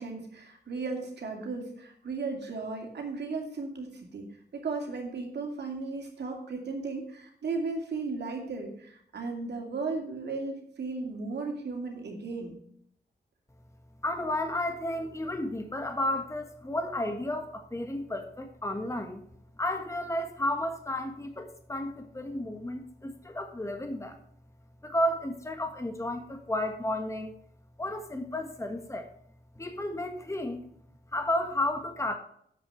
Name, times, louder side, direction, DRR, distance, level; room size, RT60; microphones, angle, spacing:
voice 1, 0.0-4.3 4.5-12.6, right 4 dB, 85° right, 2 dB, 2.4 m, -35 dB
voice 2, 14.0-19.2 19.6-24.2 24.8-27.3 27.8-29.1 29.5-30.6 31.1-32.2, left 1 dB, 15° left, 6 dB, 1.3 m, -32 dB
7.9 x 6.2 x 6.8 m, 0.66 s
cardioid pair, 75°, 17 cm